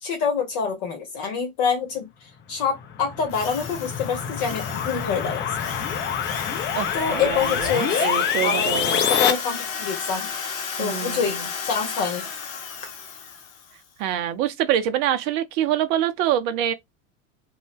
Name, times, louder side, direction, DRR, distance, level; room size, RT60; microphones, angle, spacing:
voice 1, 0.0-2.0 2.5-5.6 6.9-8.0 8.4-8.7 9.0-10.3 10.8-11.4 11.6-12.3, left 6 dB, 50° left, 1.1 m, -26 dB
sound 1, 2.8-9.3, left 8 dB, 25° left, 0.5 m, -26 dB
Drill, 3.3-13.7, left 6 dB, 75° left, 0.7 m, -35 dB
voice 2, 6.8-9.0 10.8-11.4 14.0-16.7, right 11 dB, 45° right, 0.4 m, -25 dB
2.6 x 2.2 x 3.4 m
figure-of-eight pair, 75°, 40 cm